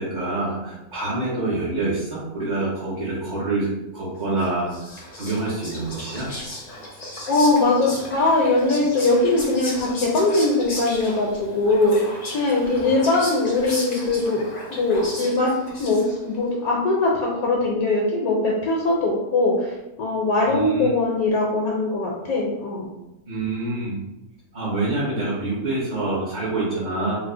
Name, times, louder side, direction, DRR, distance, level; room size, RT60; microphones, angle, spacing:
voice 1, 0.0-6.3 12.7-12.9 20.4-20.9 23.3-24.0 24.5-27.1, right 2 dB, 40° right, -10 dB, 0.8 m, -26 dB
Whispering, 4.4-16.4, left 1 dB, 50° left, 0.5 m, -36 dB
voice 2, 7.3-14.4 14.7-15.5 15.8-22.9, left 2 dB, 70° left, -3 dB, 1.1 m, -21 dB
3.3 x 2.0 x 3.7 m, 0.95 s
omnidirectional pair, 1.6 m